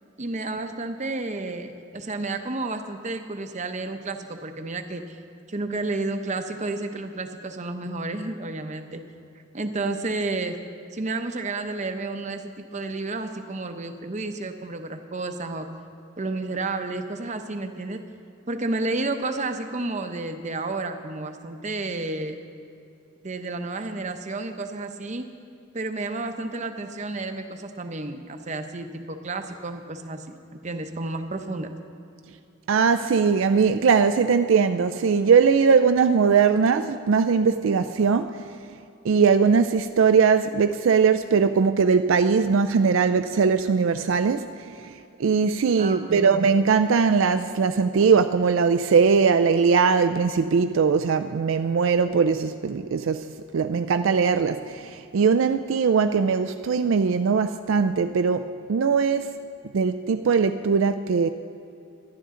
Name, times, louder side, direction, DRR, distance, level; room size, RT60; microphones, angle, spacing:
voice 1, 0.2-5.2 5.5-9.0 9.5-10.6 10.9-15.7 16.2-18.1 18.5-22.4 23.2-25.3 25.7-31.7 45.8-46.3, right 2 dB, 35° right, 0.8 m, -31 dB
voice 2, 32.7-38.5 39.0-53.3 53.5-59.3 59.7-61.3, right 5 dB, 65° right, 0.4 m, -20 dB
23.5 x 11.5 x 3.7 m
head